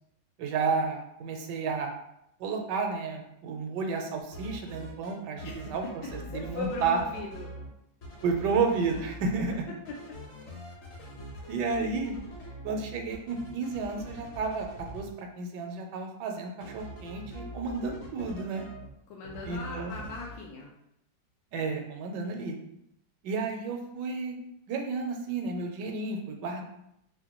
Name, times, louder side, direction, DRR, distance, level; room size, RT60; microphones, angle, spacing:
voice 1, 0.4-1.9 2.4-7.0 8.2-9.7 11.5-12.2 12.6-14.7 14.9-18.7 19.4-20.0 21.5-22.6 23.2-24.4 24.7-26.6, right 4 dB, 75° right, 3 dB, 1.2 m, -31 dB
sound 1, 4.3-5.1 5.4-7.7 8.0-9.6 9.8-15.0 16.6-18.9 19.2-20.4, equal, 50° left, 0.8 m, -44 dB
voice 2, 5.4-5.7 6.0-7.5 19.1-20.7, left 3 dB, 80° left, -1 dB, 1.2 m, -39 dB
4.4 x 2.2 x 2.9 m, 0.79 s
omnidirectional pair, 2.0 m